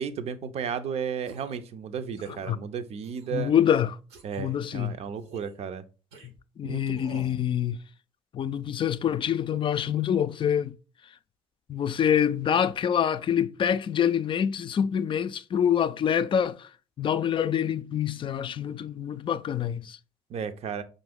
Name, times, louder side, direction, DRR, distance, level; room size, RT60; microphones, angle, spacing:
voice 1, 0.0-3.5 4.2-5.8 6.6-7.0 20.3-20.8, right 7 dB, 50° right, 0.6 m, -33 dB
sound 1, 1.2-1.6 2.1-2.5 3.0-3.6 4.1-4.4 5.2-5.5 6.1-6.3 6.9-7.4, right 3 dB, 75° right, 0.8 m, -48 dB
voice 2, 3.3-3.9 4.4-4.9 6.2-7.8 8.3-10.7 11.7-16.7 17.0-20.0, left 9 dB, 40° left, 0.4 m, -26 dB
5.3 x 2.6 x 3.5 m
figure-of-eight pair, 45°, 14 cm